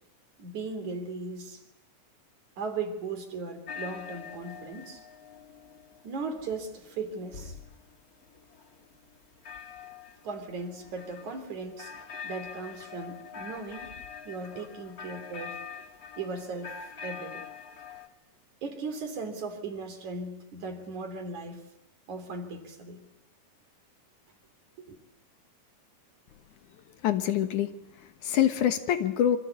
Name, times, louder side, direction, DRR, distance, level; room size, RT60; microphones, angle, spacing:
voice 1, 0.4-1.6 2.6-5.0 6.0-7.6 10.2-11.9 12.2-14.0 14.2-15.6 16.2-17.4 18.6-21.6 22.1-23.0 24.8-24.9, right 3 dB, 60° right, 6 dB, 4.7 m, -37 dB
sound 1, 3.7-18.1, left 6 dB, 35° left, 1.7 m, -45 dB
voice 2, 27.0-27.7 28.0-29.4, left 10 dB, 65° left, 9 dB, 2.7 m, -25 dB
26.5 x 26.0 x 8.5 m, 0.77 s
omnidirectional pair, 3.9 m